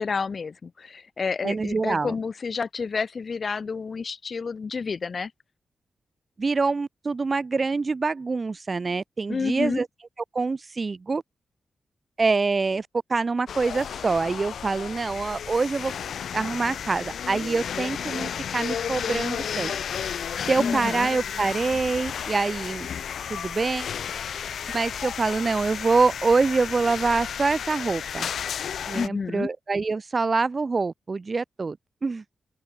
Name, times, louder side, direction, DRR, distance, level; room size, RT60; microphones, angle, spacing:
voice 1, 0.0-5.3 9.3-9.8 20.6-21.1 28.9-29.5, left 5 dB, 50° left, 2.0 m, -29 dB
voice 2, 1.4-2.2 6.4-9.9 10.3-11.2 12.2-15.9 16.3-19.8 20.5-22.9 23.3-23.9 24.7-28.3 28.9-31.8 32.0-32.2, right 4 dB, 35° right, 0.7 m, -25 dB
sound 1, 13.5-29.1, left 8 dB, 85° left, 1.0 m, -33 dB
open air
wide cardioid pair, 105°, 0 cm